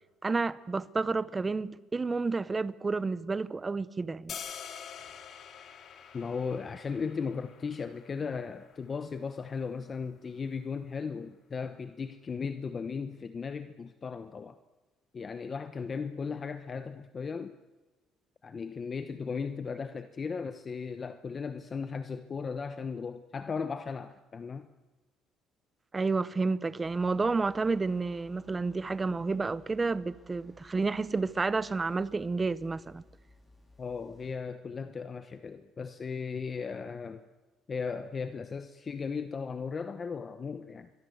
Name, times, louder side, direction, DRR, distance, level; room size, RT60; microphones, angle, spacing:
voice 1, 0.2-4.4 25.9-33.0, right 3 dB, 20° right, 0.9 m, -30 dB
sound 1, 4.3-10.4, left 8 dB, 50° left, 2.5 m, -47 dB
voice 2, 6.1-14.6 15.1-17.6 18.4-24.7 33.8-37.2 37.7-40.9, left 5 dB, 30° left, 1.0 m, -36 dB
sound 2, 26.8-34.4, left 2 dB, 15° left, 4.5 m, -59 dB
27.0 x 23.5 x 8.0 m
cardioid pair, 135°, 0 cm